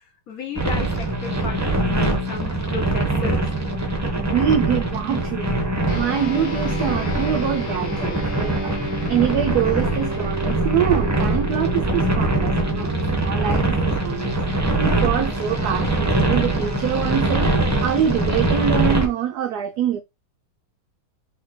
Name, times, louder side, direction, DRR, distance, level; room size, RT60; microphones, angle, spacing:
voice 1, 0.0-3.5, left 5 dB, 55° left, 1.2 m, -34 dB
sound 1, 0.6-19.1, right 2 dB, 15° right, 0.6 m, -23 dB
voice 2, 4.2-5.5 5.9-8.7 9.1-14.4 14.8-17.5 17.8-20.0, right 9 dB, 80° right, 0.8 m, -24 dB
sound 2, 5.9-15.6, right 1 dB, 85° left, 2.2 m, -32 dB
4.3 x 3.7 x 3.1 m
omnidirectional pair, 2.2 m